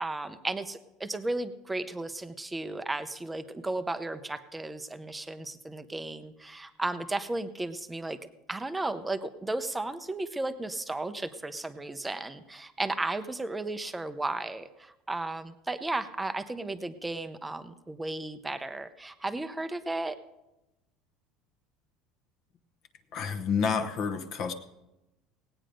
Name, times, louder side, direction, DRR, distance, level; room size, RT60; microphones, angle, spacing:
voice 1, 0.0-8.2 8.5-20.2, right 2 dB, 10° right, 10 dB, 0.6 m, -34 dB
voice 2, 23.1-24.5, left 6 dB, 40° left, 8 dB, 0.9 m, -29 dB
18.0 x 8.9 x 5.1 m, 0.96 s
cardioid pair, 155°, 0 cm